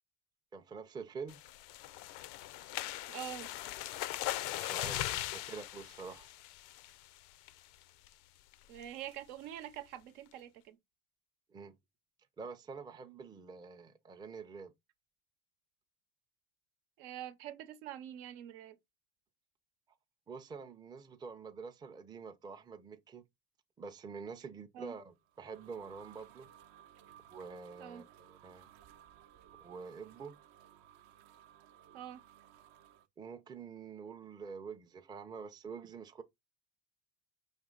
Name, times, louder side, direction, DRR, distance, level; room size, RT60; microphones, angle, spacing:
voice 1, 0.5-1.4 4.5-6.3 11.5-11.8 12.4-14.7 20.3-23.2 23.8-26.5 27.3-28.7 29.6-30.3 33.2-36.2, right 5 dB, 10° right, 0.4 m, -47 dB
sound 1, 1.3-7.1 7.5-7.7 8.1-8.2 8.5-8.8, left 15 dB, 65° left, 0.5 m, -40 dB
voice 2, 3.1-3.5 8.7-10.8 17.0-18.8 24.7-25.0 27.8-28.0 31.9-32.2, right 11 dB, 80° right, 0.9 m, -45 dB
sound 2, 25.1-33.1, right 10 dB, 55° right, 0.7 m, -59 dB
5.2 x 2.7 x 3.7 m
supercardioid pair, 115°, 43 cm